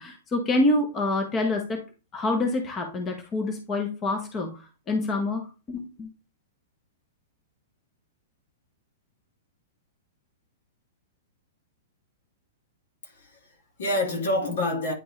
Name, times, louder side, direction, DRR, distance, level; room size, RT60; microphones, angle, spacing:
voice 1, 0.0-1.8 2.1-6.1, left 2 dB, 20° left, 1.1 m, -27 dB
voice 2, 13.0-14.9, left 1 dB, 70° left, 2.5 m, -28 dB
9.4 x 3.4 x 3.3 m
hypercardioid pair, 145°, 0 cm